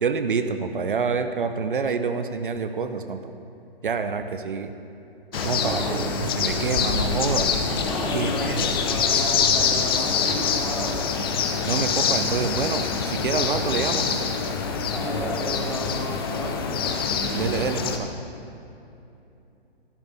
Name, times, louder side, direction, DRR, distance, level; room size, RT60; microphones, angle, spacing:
voice 1, 0.0-3.3 3.8-4.7 5.4-7.5 8.1-8.6 11.7-14.2 17.3-18.1, right 5 dB, 55° right, 9 dB, 0.7 m, -27 dB
sound 1, 5.3-10.3, left 2 dB, 65° left, 1.6 m, -36 dB
sound 2, 5.3-18.0, left 5 dB, 25° left, 0.6 m, -25 dB
voice 2, 5.5-6.0 7.8-10.9 14.9-16.5, left 1 dB, 5° left, -3 dB, 1.1 m, -32 dB
14.5 x 7.7 x 3.9 m, 2.7 s
figure-of-eight pair, 130°, 31 cm